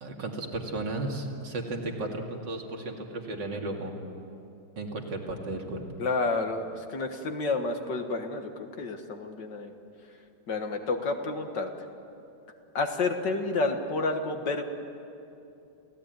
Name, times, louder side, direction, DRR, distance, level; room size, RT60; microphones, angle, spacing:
voice 1, 0.0-3.9 4.8-5.8, right 2 dB, 60° right, 2 dB, 3.0 m, -34 dB
voice 2, 6.0-8.5 8.8-9.7 10.5-11.7 12.7-14.6, left 3 dB, 55° left, 5 dB, 2.2 m, -30 dB
28.5 x 17.0 x 9.3 m, 2.7 s
omnidirectional pair, 2.3 m